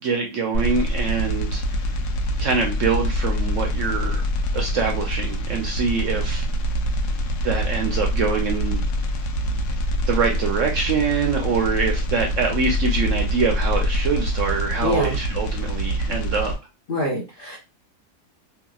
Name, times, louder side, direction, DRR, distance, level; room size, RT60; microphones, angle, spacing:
voice 1, 0.0-1.8 2.4-4.3 4.5-6.5 7.4-8.9 10.1-16.5, right 5 dB, 70° right, 2 dB, 0.8 m, -24 dB
sound 1, 0.5-16.5, equal, 80° left, 1.1 m, -25 dB
voice 2, 14.8-15.2 16.9-17.6, left 1 dB, 55° left, -3 dB, 0.6 m, -25 dB
2.8 x 2.7 x 2.3 m, 0.27 s
omnidirectional pair, 1.7 m